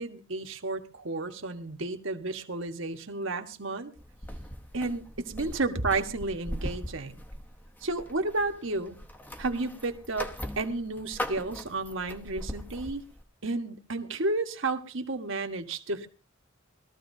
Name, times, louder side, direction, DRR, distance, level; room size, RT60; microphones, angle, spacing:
voice 1, 0.0-3.9 4.7-7.2 7.8-9.0 9.4-13.0 13.4-16.1, right 3 dB, 70° right, 5 dB, 1.5 m, -32 dB
sound 1, 4.0-13.2, equal, 10° left, 0.9 m, -40 dB
21.0 x 14.0 x 2.7 m, 0.34 s
head